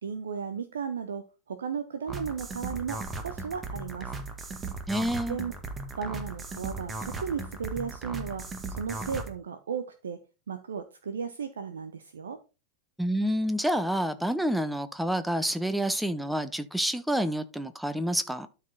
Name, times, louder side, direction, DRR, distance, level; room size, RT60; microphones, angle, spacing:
voice 1, 0.0-4.1 5.3-5.5 6.0-8.4 8.7-10.2 10.5-12.4, right 6 dB, 65° right, 0.8 m, -35 dB
sound 1, 2.1-9.3, right 3 dB, 20° right, 1.6 m, -37 dB
voice 2, 4.9-5.4 13.0-18.5, equal, 5° right, 0.8 m, -28 dB
12.0 x 5.0 x 4.0 m
figure-of-eight pair, 90°, 0 cm